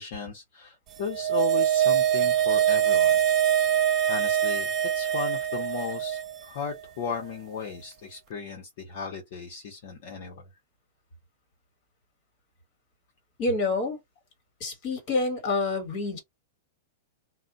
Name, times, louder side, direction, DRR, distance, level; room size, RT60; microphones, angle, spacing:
voice 1, 0.0-3.2 4.1-10.5, left 6 dB, 45° left, 0.8 m, -36 dB
sound 1, 1.0-6.4 6.7-6.8, right 10 dB, 25° right, 0.3 m, -24 dB
voice 2, 13.4-14.0 14.6-16.2, left 3 dB, 30° left, 1.4 m, -27 dB
2.4 x 2.1 x 3.9 m
supercardioid pair, 175°, 0 cm